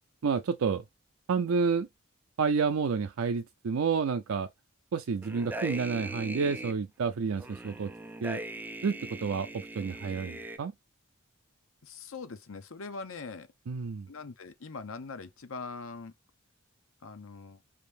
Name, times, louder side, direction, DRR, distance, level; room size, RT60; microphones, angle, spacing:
voice 1, 0.2-0.8 1.3-1.9 2.4-4.5 4.9-7.9 8.2-8.4 8.8-10.7 13.7-14.1, right 5 dB, 80° right, 0.4 m, -29 dB
sound 1, 5.2-6.7 7.4-10.6, right 2 dB, 10° right, 0.4 m, -40 dB
voice 2, 11.8-13.5 14.1-16.1 17.0-17.6, left 4 dB, 70° left, 0.7 m, -42 dB
4.8 x 2.7 x 3.3 m
head